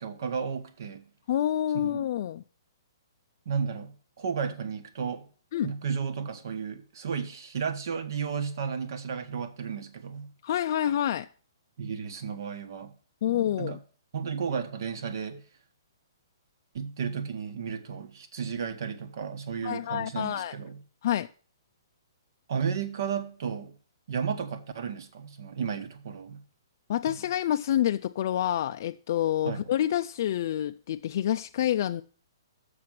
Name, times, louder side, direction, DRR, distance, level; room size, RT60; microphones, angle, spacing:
voice 1, 0.0-1.1 1.8-2.0 3.4-5.2 5.6-10.3 11.8-13.0 13.3-13.8 14.1-15.4 16.7-20.8 22.5-23.8 24.1-26.4 27.1-27.2 29.4-29.6, right 6 dB, 60° right, 1.3 m, -33 dB
voice 2, 1.3-2.4 5.5-5.7 10.4-11.3 13.2-13.8 19.6-20.5 21.0-21.3 26.9-32.0, left 11 dB, 50° left, 0.3 m, -27 dB
6.6 x 6.0 x 7.4 m
hypercardioid pair, 160°, 2 cm